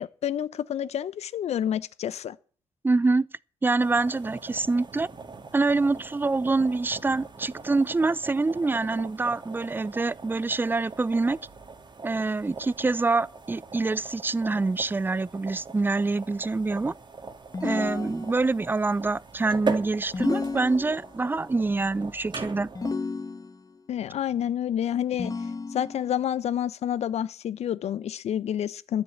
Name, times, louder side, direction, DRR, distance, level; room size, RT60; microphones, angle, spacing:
voice 1, 0.0-2.4 23.9-25.3 25.7-29.0, left 10 dB, 60° left, 0.9 m, -29 dB
voice 2, 2.8-3.3 3.6-5.1 5.5-11.4 12.0-16.9 17.6-22.7, right 3 dB, 15° right, 0.5 m, -25 dB
sound 1, 3.8-22.9, right 4 dB, 40° right, 2.1 m, -40 dB
sound 2, 17.5-18.7 20.1-21.3 22.7-23.8 25.2-26.2, left 4 dB, 30° left, 1.1 m, -32 dB
12.5 x 7.7 x 7.9 m
hypercardioid pair, 45°, 12 cm